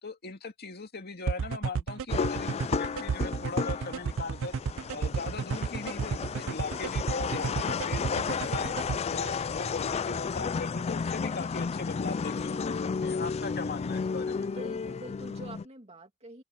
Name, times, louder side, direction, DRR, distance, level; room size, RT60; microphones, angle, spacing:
voice 1, 0.0-4.5 4.9-8.8 9.1-14.5, left 3 dB, 50° left, 2.4 m, -39 dB
sound 1, 1.3-9.0, right 5 dB, 65° right, 0.4 m, -31 dB
sound 2, 2.1-15.6, left 5 dB, 30° left, 0.3 m, -33 dB
voice 2, 14.3-16.4, right 1 dB, 30° right, 2.6 m, -46 dB
open air
head